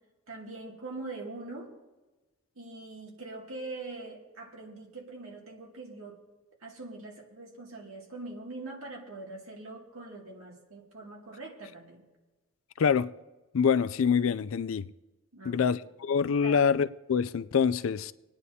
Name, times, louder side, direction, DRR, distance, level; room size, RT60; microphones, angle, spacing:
voice 1, 0.3-1.7 2.6-6.2 6.6-12.0 15.3-15.7 16.4-16.6, right 2 dB, 85° right, 2.4 m, -43 dB
voice 2, 12.8-13.1 13.5-14.9 15.4-18.1, left 6 dB, 75° left, 0.4 m, -25 dB
27.0 x 9.7 x 2.8 m
head